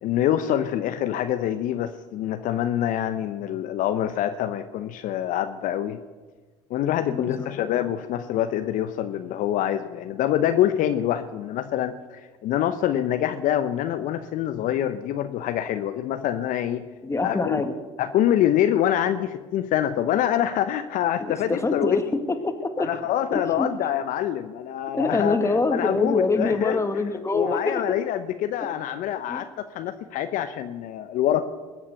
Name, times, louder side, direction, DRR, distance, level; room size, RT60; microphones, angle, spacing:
voice 1, 0.0-6.0 6.7-16.8 17.2-17.6 18.0-22.0 22.8-25.4 25.7-26.8 27.3-31.4, left 11 dB, 55° left, 9 dB, 0.9 m, -25 dB
voice 2, 7.1-7.5 17.0-17.8 21.2-22.9 23.3-23.7 24.9-28.0 29.3-29.5, left 3 dB, 15° left, 7 dB, 1.9 m, -25 dB
21.5 x 8.6 x 6.6 m, 1.3 s
hypercardioid pair, 65°, 16 cm